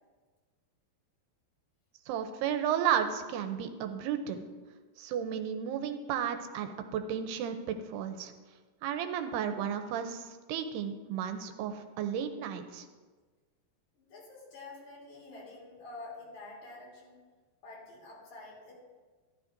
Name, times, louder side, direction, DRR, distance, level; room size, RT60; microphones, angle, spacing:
voice 1, 2.1-4.5 5.0-8.3 8.8-12.9, right 8 dB, 80° right, 7 dB, 2.6 m, -33 dB
voice 2, 13.9-17.2 17.6-18.7, left 2 dB, 50° left, -5 dB, 4.2 m, -48 dB
15.0 x 11.5 x 2.6 m, 1.4 s
omnidirectional pair, 4.7 m